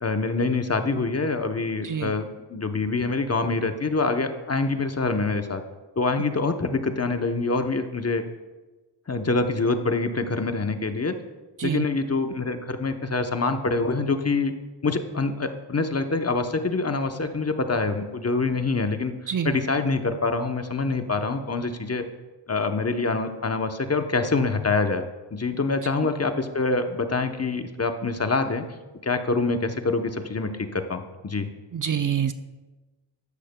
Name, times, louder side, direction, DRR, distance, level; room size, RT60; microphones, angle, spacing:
voice 1, 0.0-5.6 6.0-8.2 9.1-11.1 11.6-14.5 14.8-19.1 19.4-22.0 22.5-25.0 25.3-28.6 29.0-31.5, left 3 dB, 35° left, 7 dB, 0.8 m, -25 dB
voice 2, 31.7-32.3, right 8 dB, 45° right, 9 dB, 0.6 m, -26 dB
13.5 x 11.5 x 2.2 m, 1.2 s
cardioid pair, 70°, 46 cm